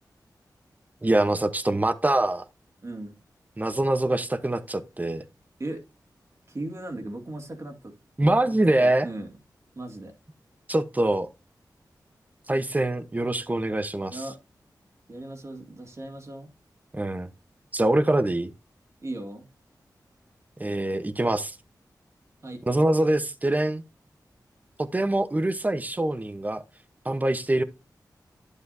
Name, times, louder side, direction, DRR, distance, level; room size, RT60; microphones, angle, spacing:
voice 1, 1.0-2.4 3.6-5.2 8.2-9.1 10.7-11.3 12.5-14.2 16.9-17.3 17.7-18.5 20.6-21.6 22.7-23.8 24.8-26.6 27.0-27.6, right 1 dB, 20° right, 0.9 m, -24 dB
voice 2, 2.8-3.2 5.6-5.8 6.5-7.9 8.2-8.5 8.8-9.3 9.8-10.1 14.1-14.4 15.1-16.5 19.0-19.5 22.4-22.6, right 2 dB, 45° right, 2.3 m, -37 dB
11.0 x 8.2 x 2.7 m
wide cardioid pair, 85°, 7 cm